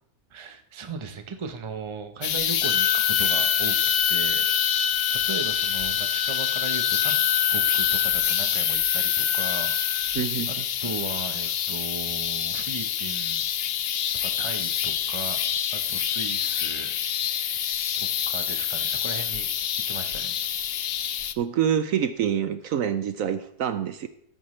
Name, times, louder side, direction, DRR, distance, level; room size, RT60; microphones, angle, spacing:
voice 1, 0.3-3.8 4.1-4.5 5.1-7.2 7.5-10.1 10.5-13.5 14.1-15.4 15.7-17.0 18.0-19.5 19.8-20.7, right 4 dB, 25° right, 7 dB, 0.8 m, -37 dB
sound 1, 2.2-21.3, left 9 dB, 80° left, 0.5 m, -26 dB
sound 2, 2.6-10.1, left 8 dB, 60° left, 1.0 m, -28 dB
voice 2, 10.1-10.6 21.4-24.1, right 9 dB, 65° right, 12 dB, 0.9 m, -26 dB
14.0 x 9.3 x 3.2 m, 0.69 s
omnidirectional pair, 1.8 m